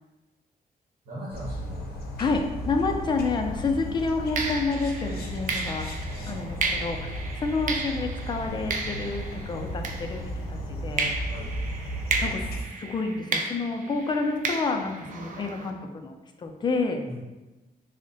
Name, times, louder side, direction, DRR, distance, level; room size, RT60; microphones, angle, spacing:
voice 1, 1.0-1.9 6.0-7.3 11.3-11.5 17.0-17.2, equal, 75° right, -6 dB, 0.9 m, -41 dB
sound 1, 1.3-12.6, equal, 80° left, 0.6 m, -35 dB
voice 2, 2.2-5.9 6.3-11.1 12.2-12.5 12.8-17.0, left 3 dB, 30° left, 4 dB, 0.4 m, -29 dB
sound 2, 3.2-3.4 4.3-10.5 11.0-15.7, right 3 dB, 55° right, 0.4 m, -33 dB
3.5 x 2.1 x 3.9 m, 1.1 s
wide cardioid pair, 155°, 16 cm